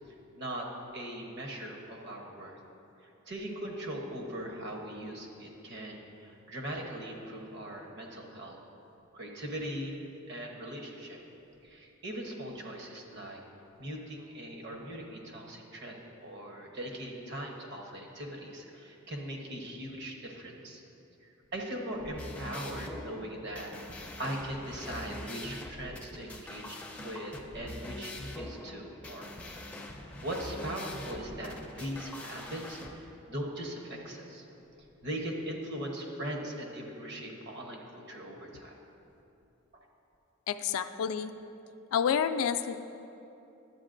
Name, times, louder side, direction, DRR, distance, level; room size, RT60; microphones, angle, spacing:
voice 1, 0.4-0.7 0.9-2.6 3.3-8.5 9.1-10.0 10.3-11.2 11.6-13.4 13.8-20.8 21.5-29.3 30.2-34.4 35.0-38.8, right 1 dB, 55° right, 0 dB, 1.0 m, -40 dB
sound 1, 21.9-32.9, left 1 dB, 5° left, 0.4 m, -43 dB
voice 2, 40.5-41.3 41.9-42.8, left 7 dB, 80° left, 9 dB, 0.3 m, -29 dB
11.0 x 8.0 x 2.5 m, 2.8 s
head